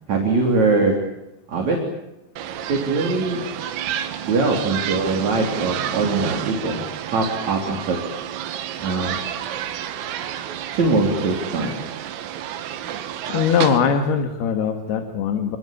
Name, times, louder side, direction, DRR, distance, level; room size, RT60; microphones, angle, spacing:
voice 1, 0.1-1.1 1.5-1.9 2.7-3.4 4.2-6.8 7.1-8.0 8.8-9.2 10.7-11.8, right 3 dB, 40° right, 1 dB, 4.2 m, -22 dB
sound 1, 2.4-13.8, right 10 dB, 80° right, 4.1 m, -30 dB
voice 2, 13.3-15.6, left 7 dB, 60° left, 6 dB, 3.3 m, -21 dB
28.5 x 21.5 x 8.7 m, 0.91 s
omnidirectional pair, 5.9 m